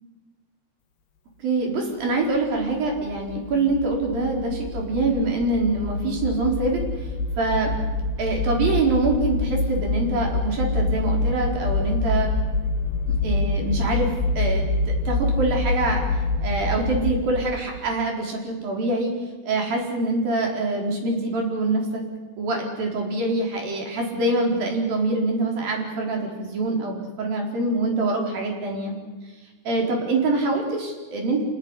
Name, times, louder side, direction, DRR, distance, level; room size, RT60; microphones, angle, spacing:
voice 1, 1.4-6.8 7.4-7.7 8.2-12.3 13.2-14.1 14.4-16.0 16.4-19.1 19.5-22.0 22.4-28.9 29.6-31.4, right 2 dB, 60° right, 1 dB, 6.2 m, -24 dB
sound 1, 2.4-17.8, left 2 dB, 80° left, 3.5 m, -26 dB
28.0 x 18.0 x 10.0 m, 1.3 s
omnidirectional pair, 4.6 m